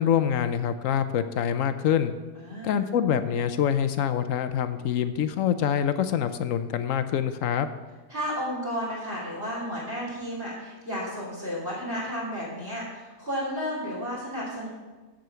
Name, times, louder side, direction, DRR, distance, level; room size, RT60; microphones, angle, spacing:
voice 1, 0.0-2.1 2.6-7.7, left 9 dB, 70° left, 11 dB, 1.0 m, -25 dB
voice 2, 2.3-2.9 8.1-14.7, equal, 15° right, -9 dB, 3.7 m, -32 dB
7.8 x 7.6 x 6.9 m, 1.3 s
omnidirectional pair, 1.5 m